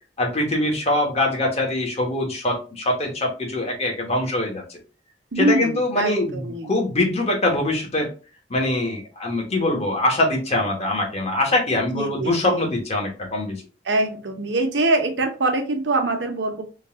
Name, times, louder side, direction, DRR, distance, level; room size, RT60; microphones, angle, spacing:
voice 1, 0.2-4.8 5.4-8.1 8.5-13.6, left 1 dB, 35° left, 0 dB, 1.1 m, -23 dB
voice 2, 5.3-6.7 11.9-12.7 13.9-16.6, right 2 dB, 85° right, 4 dB, 0.9 m, -23 dB
3.8 x 2.4 x 3.5 m, 0.34 s
head